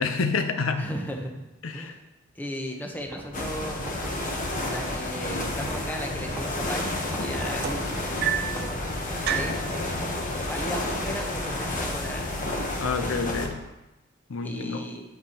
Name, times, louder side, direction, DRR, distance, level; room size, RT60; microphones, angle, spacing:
voice 1, 0.0-0.9 1.6-2.0 12.8-13.6 14.3-14.9, left 4 dB, 80° left, 7 dB, 0.6 m, -28 dB
voice 2, 0.8-1.4 1.7-2.0 2.3-3.8 4.6-8.8 9.1-10.0 10.3-12.4 14.4-15.0, equal, 10° left, 2 dB, 0.9 m, -36 dB
sound 1, 3.0-9.4, right 1 dB, 10° right, 1.5 m, -43 dB
sound 2, 3.3-13.5, left 1 dB, 40° left, 1.0 m, -30 dB
sound 3, 7.6-8.6 9.3-9.7 10.7-10.8 11.2-11.5 12.3-12.4, right 9 dB, 50° right, 0.4 m, -29 dB
8.2 x 8.0 x 2.9 m, 0.99 s
head